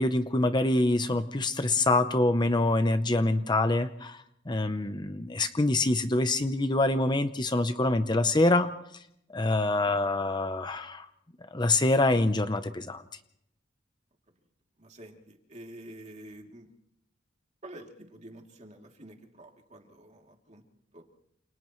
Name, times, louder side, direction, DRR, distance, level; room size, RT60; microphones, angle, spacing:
voice 1, 0.0-4.2 4.5-8.7 9.3-11.0 11.5-13.0, left 2 dB, 25° left, 9 dB, 0.7 m, -25 dB
voice 2, 14.8-16.7 17.6-20.6 20.9-21.1, right 1 dB, 35° right, 2 dB, 3.0 m, -48 dB
29.0 x 28.0 x 3.2 m, 0.76 s
head